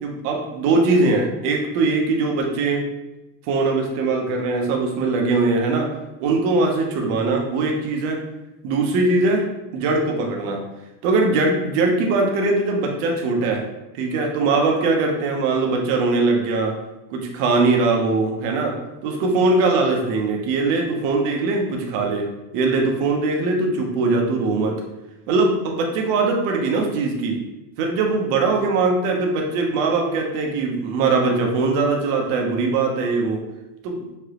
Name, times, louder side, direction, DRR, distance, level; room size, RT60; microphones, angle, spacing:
voice 1, 0.0-2.8 3.5-5.9 6.2-8.2 8.6-10.6 11.0-13.6 13.9-16.8 17.1-18.8 19.0-22.2 22.5-24.8 25.3-27.4 27.8-33.4 33.8-34.0, right 3 dB, 35° right, 1 dB, 0.7 m, -21 dB
5.0 x 3.5 x 2.9 m, 0.98 s
supercardioid pair, 165°, 49 cm